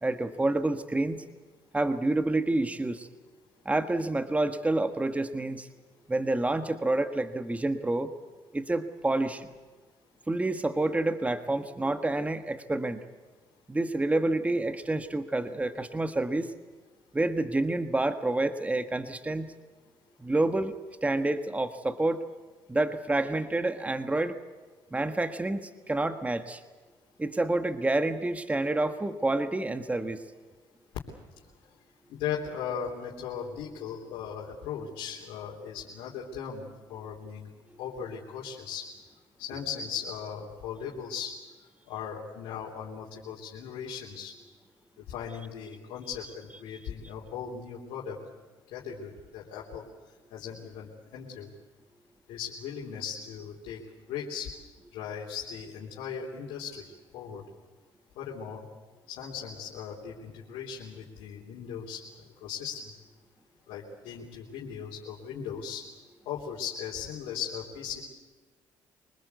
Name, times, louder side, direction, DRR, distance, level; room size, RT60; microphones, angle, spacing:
voice 1, 0.0-1.2 1.7-3.1 3.6-5.7 6.1-8.1 8.5-9.5 10.3-13.0 13.7-16.5 17.1-19.5 20.2-20.7 21.0-22.2 22.7-24.4 24.9-26.6 27.2-30.2, right 2 dB, 15° right, 9 dB, 1.5 m, -28 dB
voice 2, 32.1-37.5 37.8-38.9 39.4-44.3 45.0-48.2 48.7-49.9 50.3-51.5 52.3-53.8 54.1-54.5 54.9-57.4 58.2-58.6 59.1-62.0 62.4-62.9 63.7-65.8 66.3-68.0, left 7 dB, 85° left, -3 dB, 3.5 m, -38 dB
25.0 x 20.0 x 8.2 m, 1.3 s
supercardioid pair, 75°, 9 cm